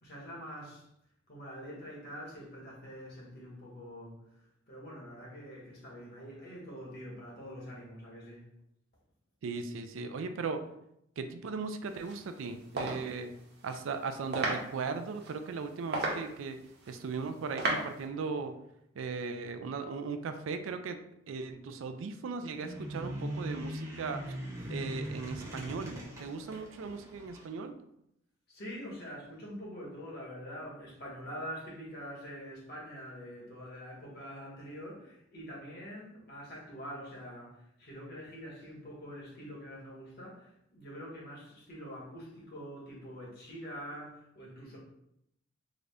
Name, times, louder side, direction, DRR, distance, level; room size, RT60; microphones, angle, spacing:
voice 1, 0.0-0.9 1.3-8.4 28.5-44.8, equal, 55° left, -4 dB, 1.3 m, -45 dB
voice 2, 9.4-10.6 11.2-13.3 13.6-16.6 16.9-18.6 19.0-24.4 24.7-27.8, right 4 dB, 85° right, 8 dB, 0.4 m, -38 dB
sound 1, 11.9-18.1, right 2 dB, 55° right, 0.8 m, -38 dB
sound 2, 22.5-27.5, equal, 15° right, 0.7 m, -41 dB
3.7 x 2.1 x 3.4 m, 0.78 s
head